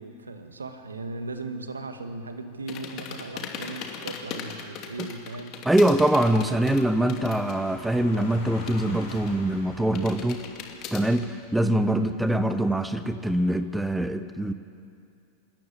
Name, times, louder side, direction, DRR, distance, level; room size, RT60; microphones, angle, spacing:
voice 1, 0.0-5.6 11.9-12.1, right 2 dB, 75° right, 8 dB, 1.7 m, -37 dB
sound 1, 2.7-7.7 7.9-9.5 10.0-11.2, left 7 dB, 40° left, 2.7 m, -39 dB
voice 2, 5.6-10.4 10.9-14.5, right 1 dB, 5° right, 11 dB, 1.0 m, -23 dB
sound 2, 5.8-13.5, left 3 dB, 60° left, 7.3 m, -47 dB
26.0 x 14.0 x 10.0 m, 2.4 s
figure-of-eight pair, 90°, 0 cm